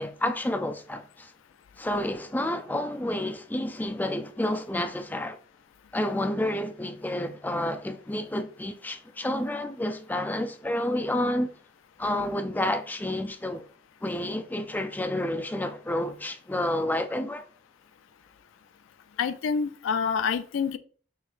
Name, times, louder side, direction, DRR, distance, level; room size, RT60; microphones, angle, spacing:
voice 1, 0.0-1.3 1.8-5.4 5.9-11.5 12.0-13.6 14.0-17.5, left 1 dB, 10° left, 0.3 m, -30 dB
voice 2, 19.2-20.8, left 6 dB, 90° left, 0.3 m, -27 dB
5.7 x 3.1 x 2.4 m
head